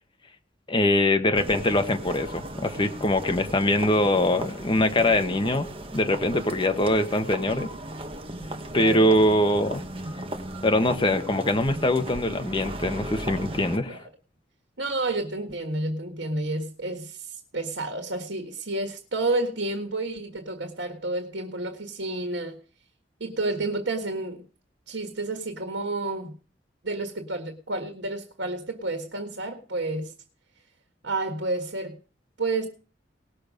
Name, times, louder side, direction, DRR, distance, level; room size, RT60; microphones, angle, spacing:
voice 1, 0.7-5.7 5.9-7.7 8.7-9.8 10.6-14.0, left 1 dB, 30° left, 1.4 m, -23 dB
sound 1, 1.3-13.8, right 1 dB, 30° right, 1.5 m, -36 dB
voice 2, 8.7-9.1 13.9-14.1 14.8-22.6 23.2-24.5 24.9-26.4 26.8-30.1 31.0-32.0 32.4-32.7, right 2 dB, 85° right, 1.7 m, -30 dB
19.0 x 6.9 x 5.3 m
head